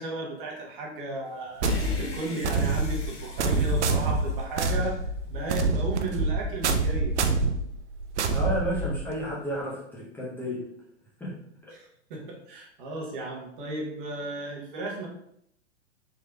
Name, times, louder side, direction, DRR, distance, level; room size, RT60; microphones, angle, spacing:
voice 1, 0.0-5.0 5.3-7.1 11.7-15.1, right 2 dB, 45° right, -1 dB, 1.0 m, -35 dB
sound 1, 1.6-5.1, left 3 dB, 65° left, 1.0 m, -41 dB
sound 2, 1.6-9.3, right 3 dB, 70° right, 0.5 m, -26 dB
voice 2, 8.3-10.6 11.2-11.3, equal, 5° left, -8 dB, 0.7 m, -31 dB
3.6 x 3.0 x 2.2 m, 0.72 s
figure-of-eight pair, 105°, 36 cm